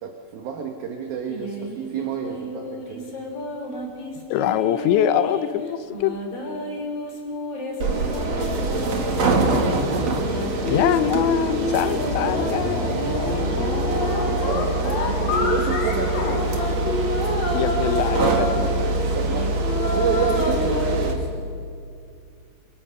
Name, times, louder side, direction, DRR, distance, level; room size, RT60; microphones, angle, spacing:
voice 1, 0.0-3.1 8.6-9.4 13.8-16.2 19.1-19.5 19.9-21.3, right 6 dB, 60° right, 3 dB, 2.8 m, -30 dB
sound 1, 1.3-5.5 5.9-9.7 10.2-14.4 14.9-18.6 19.1-20.8, left 1 dB, 35° left, 3.7 m, -30 dB
voice 2, 4.2-6.2 10.7-12.8 17.5-18.5, left 11 dB, 80° left, 11 dB, 3.1 m, -23 dB
sound 2, 7.8-21.1, right 2 dB, 45° right, 2.6 m, -24 dB
sound 3, 12.0-17.5, left 4 dB, 55° left, 3.6 m, -30 dB
30.0 x 24.0 x 6.5 m, 2.3 s
omnidirectional pair, 5.4 m